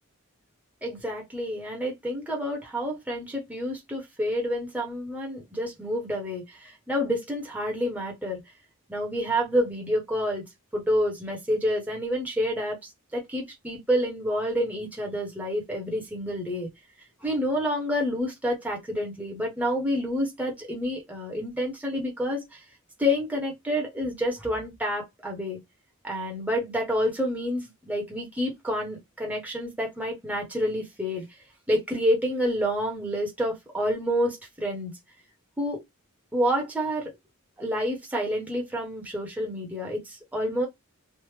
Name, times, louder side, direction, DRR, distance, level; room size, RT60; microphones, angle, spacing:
voice 1, 0.8-8.4 8.9-10.4 10.7-16.7 17.2-22.6 23.0-25.6 26.0-31.2 31.7-34.9 35.6-35.8 36.3-37.1 37.6-40.7, equal, 5° right, 0.9 m, -28 dB
3.4 x 2.0 x 3.2 m
head